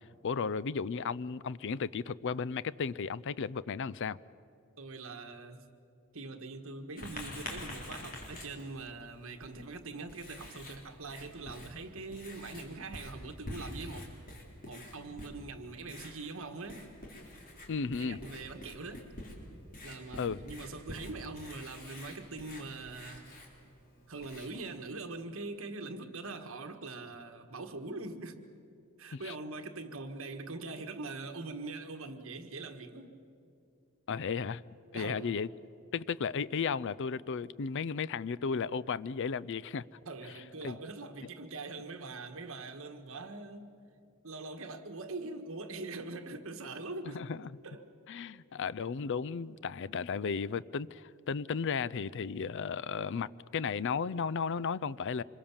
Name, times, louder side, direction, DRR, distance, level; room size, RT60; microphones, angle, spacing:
voice 1, 0.2-4.2 17.7-18.2 20.2-20.4 29.1-29.3 34.1-34.6 34.9-35.5 35.9-39.8 40.6-40.8 47.1-47.5 48.1-55.2, left 5 dB, 60° left, 0.5 m, -34 dB
voice 2, 4.8-5.7 6.1-14.1 14.7-16.9 18.0-19.1 19.8-23.3 24.1-28.4 29.0-33.2 34.9-35.3 40.0-43.8 44.2-47.3 47.6-47.9, right 3 dB, 65° right, 1.6 m, -43 dB
Writing, 7.0-24.8, left 1 dB, 40° left, 3.9 m, -48 dB
26.0 x 21.5 x 7.2 m
head